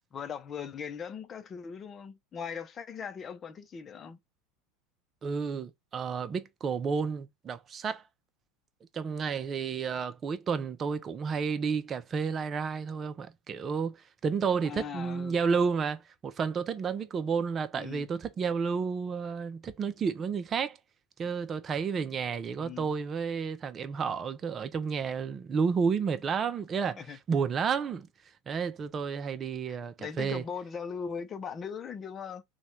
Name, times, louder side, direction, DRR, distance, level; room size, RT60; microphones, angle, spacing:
voice 1, 0.0-4.2 14.6-15.4 17.8-18.1 21.2-21.3 22.5-22.9 27.0-27.2 29.7-32.4, left 6 dB, 35° left, 0.7 m, -40 dB
voice 2, 5.2-8.0 8.9-14.0 14.2-20.8 21.2-27.0 27.3-28.1 28.5-30.4, right 6 dB, 35° right, 0.7 m, -31 dB
3.1 x 2.4 x 4.3 m
hypercardioid pair, 85°, 0 cm